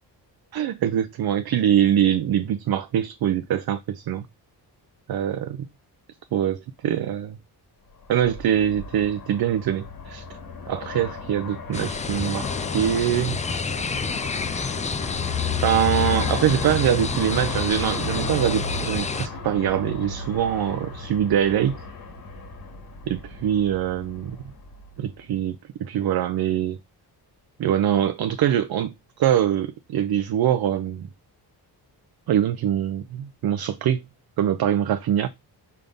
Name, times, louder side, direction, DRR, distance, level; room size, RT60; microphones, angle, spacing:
voice 1, 0.5-4.2 5.1-5.7 6.3-7.4 8.1-10.2 10.7-13.4 15.6-21.8 23.1-24.4 25.0-26.8 27.6-31.1 32.3-34.0 34.4-35.3, right 10 dB, 65° right, 0.6 m, -23 dB
Aircraft, 8.0-25.2, left 5 dB, 55° left, 2.0 m, -34 dB
sound 1, 11.7-19.3, left 4 dB, 20° left, 0.3 m, -29 dB
5.4 x 3.5 x 5.3 m
wide cardioid pair, 130°, 41 cm